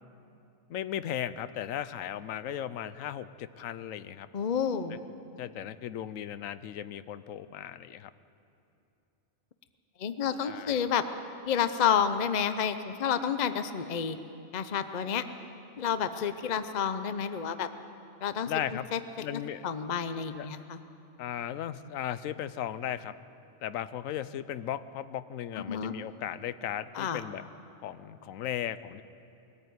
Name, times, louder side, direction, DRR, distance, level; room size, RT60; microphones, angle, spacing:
voice 1, 0.7-4.3 5.4-8.1 10.4-10.8 18.5-18.9 19.2-19.6 20.3-20.5 21.2-23.1 23.6-27.4 27.8-29.0, left 10 dB, 80° left, 14 dB, 1.1 m, -36 dB
voice 2, 4.3-5.0 10.0-11.0 11.5-14.2 14.5-15.2 15.8-17.7 18.2-18.5 18.9-20.8 25.5-25.9 26.9-27.3, left 7 dB, 40° left, 10 dB, 0.7 m, -30 dB
21.5 x 14.0 x 9.4 m, 2.8 s
omnidirectional pair, 1.4 m